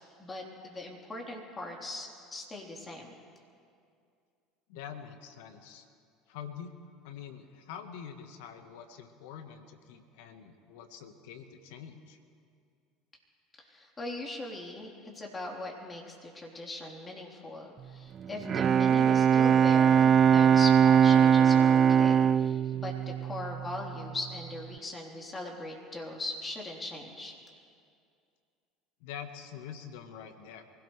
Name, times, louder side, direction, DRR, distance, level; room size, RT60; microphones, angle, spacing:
voice 1, 0.2-3.2 13.6-27.3, left 2 dB, 25° left, -2 dB, 3.9 m, -40 dB
voice 2, 4.7-5.9 6.3-6.7 7.0-12.2 29.0-30.6, left 8 dB, 70° left, 7 dB, 1.4 m, -45 dB
Bowed string instrument, 18.2-24.0, right 8 dB, 40° right, 0.3 m, -22 dB
24.0 x 17.5 x 3.4 m, 2.3 s
hypercardioid pair, 70°, 0 cm